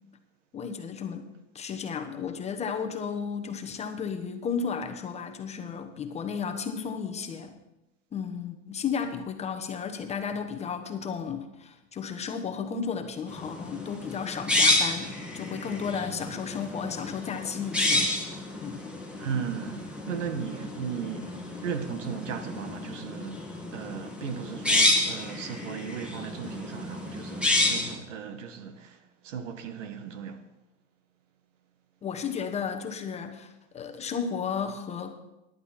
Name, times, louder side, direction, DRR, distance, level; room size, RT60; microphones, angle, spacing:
voice 1, 0.5-1.3 1.5-7.5 8.1-18.1 18.6-18.8 32.0-35.1, left 6 dB, 15° left, 1.1 m, -33 dB
sound 1, 13.3-27.9, left 2 dB, 5° right, 2.1 m, -30 dB
voice 2, 19.2-30.4, right 7 dB, 75° right, 1.6 m, -36 dB
14.5 x 11.0 x 4.3 m
supercardioid pair, 135°, 37 cm